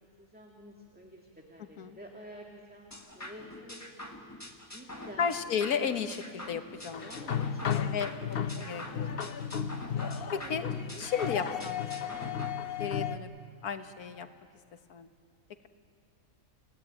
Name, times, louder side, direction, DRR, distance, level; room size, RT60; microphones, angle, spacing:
voice 1, 0.2-3.8 4.7-5.3 7.0-8.8 10.3-10.6, equal, 5° right, 0 dB, 1.9 m, -50 dB
sound 1, 2.9-12.5, left 1 dB, 10° left, 1.5 m, -45 dB
voice 2, 5.2-7.1 7.7-9.0 10.5-10.7 11.0-13.3 13.6-14.3 14.9-15.1, left 7 dB, 75° left, 9 dB, 1.7 m, -34 dB
sound 2, 6.9-13.2, left 8 dB, 50° left, 0.8 m, -34 dB
29.5 x 17.5 x 9.1 m, 2.3 s
omnidirectional pair, 1.6 m